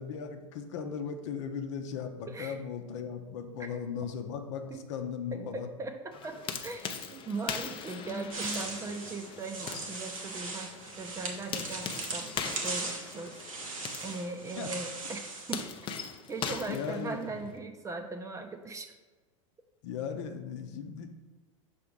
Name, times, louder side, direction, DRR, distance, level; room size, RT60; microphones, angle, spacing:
voice 1, 0.0-5.7 14.6-14.7 16.7-17.2 19.8-21.1, left 6 dB, 60° left, 5 dB, 0.8 m, -37 dB
voice 2, 5.3-13.4 14.0-15.6 16.3-18.9, right 3 dB, 20° right, 6 dB, 0.6 m, -39 dB
sound 1, 6.1-17.6, left 7 dB, 30° left, 0.6 m, -41 dB
sound 2, 8.3-15.6, right 3 dB, 85° right, 1.2 m, -39 dB
5.8 x 3.6 x 5.1 m, 1.3 s
hypercardioid pair, 95°, 17 cm